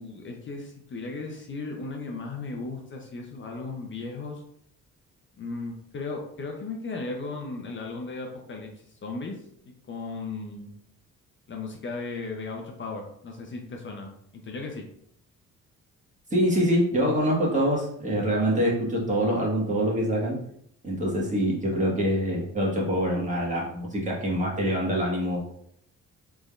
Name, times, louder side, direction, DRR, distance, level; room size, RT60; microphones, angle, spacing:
voice 1, 0.0-4.4 5.4-8.7 9.0-9.4 9.6-10.7 11.5-14.1 14.4-14.8, left 3 dB, 40° left, 2 dB, 0.7 m, -36 dB
voice 2, 16.3-20.4 20.8-25.4, equal, 25° right, -3 dB, 1.6 m, -25 dB
4.1 x 3.5 x 2.4 m, 0.69 s
cardioid pair, 90°, 30 cm